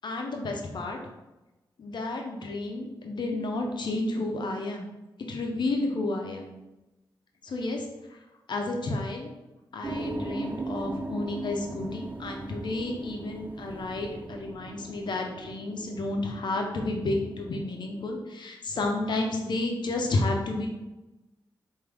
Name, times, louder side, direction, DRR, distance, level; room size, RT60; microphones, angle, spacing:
voice 1, 0.0-1.0 1.8-4.9 5.3-6.5 7.4-7.9 8.5-9.3 9.7-20.8, left 2 dB, 65° left, 2 dB, 0.7 m, -31 dB
sound 1, 9.8-18.2, right 2 dB, 20° right, 0.4 m, -39 dB
4.9 x 2.6 x 3.4 m, 1.0 s
cardioid pair, 75°, 8 cm